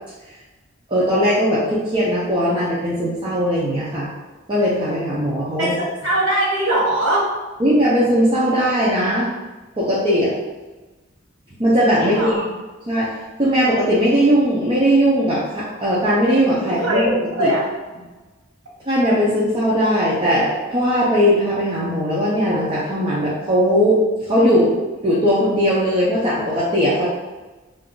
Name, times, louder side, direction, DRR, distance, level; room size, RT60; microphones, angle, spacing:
voice 1, 0.9-4.1 4.5-5.8 7.6-9.3 9.8-10.3 11.6-12.5 12.9-13.1 13.4-17.1 17.4-17.5 18.9-24.0 24.3-24.7 25.0-27.0, equal, 25° right, -8 dB, 0.5 m, -18 dB
voice 2, 5.6-7.2 12.0-12.4 16.6-17.6, right 1 dB, 70° right, -4 dB, 1.1 m, -21 dB
2.5 x 2.3 x 3.7 m, 1.2 s
head